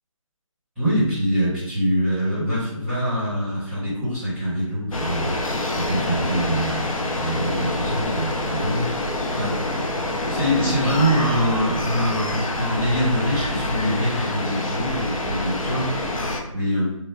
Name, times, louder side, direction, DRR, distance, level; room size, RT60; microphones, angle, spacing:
voice 1, 0.7-5.4 5.7-6.8 7.2-8.9 9.4-9.7 10.3-15.9 16.5-17.0, equal, ahead, -14 dB, 1.4 m, -24 dB
sound 1, 4.9-16.4, left 1 dB, 75° left, 0.6 m, -26 dB
2.4 x 2.1 x 3.4 m, 0.76 s
figure-of-eight pair, 165°, 18 cm